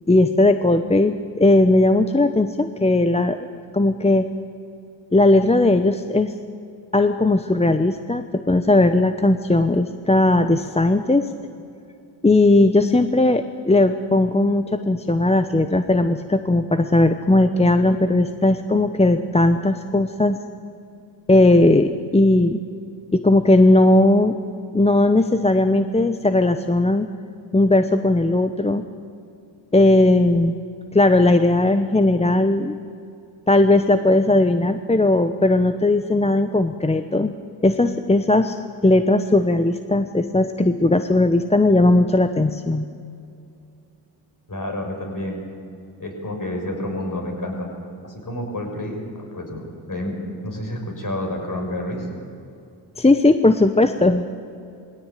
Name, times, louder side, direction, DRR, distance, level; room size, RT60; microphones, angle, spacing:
voice 1, 0.1-3.4 3.7-4.3 5.1-6.3 6.9-11.3 12.2-20.4 21.3-22.6 23.1-24.4 24.7-27.1 27.5-28.8 29.7-30.5 30.9-32.8 33.5-37.3 37.6-42.9 53.0-54.2, left 2 dB, 15° left, 9 dB, 0.9 m, -17 dB
voice 2, 44.5-45.4 46.0-47.7 48.0-50.2 50.4-52.1, left 1 dB, 45° left, 2 dB, 6.2 m, -29 dB
19.5 x 17.0 x 9.2 m, 2.5 s
cardioid pair, 65°, 46 cm